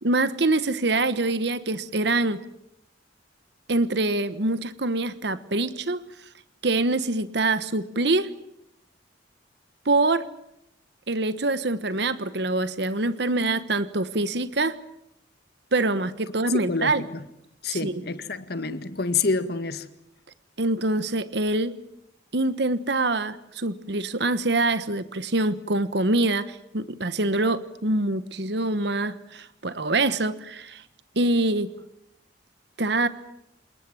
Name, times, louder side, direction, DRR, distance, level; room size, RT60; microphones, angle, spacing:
voice 1, 0.0-2.4 3.7-6.0 6.6-8.3 9.8-10.3 11.1-14.7 15.7-17.0 17.7-18.0 20.6-21.7 22.3-30.8 31.1-31.7 32.8-33.1, right 2 dB, 65° right, 1.3 m, -25 dB
voice 2, 16.7-17.3 17.6-19.9, left 4 dB, 60° left, 1.9 m, -28 dB
28.0 x 20.0 x 9.2 m
head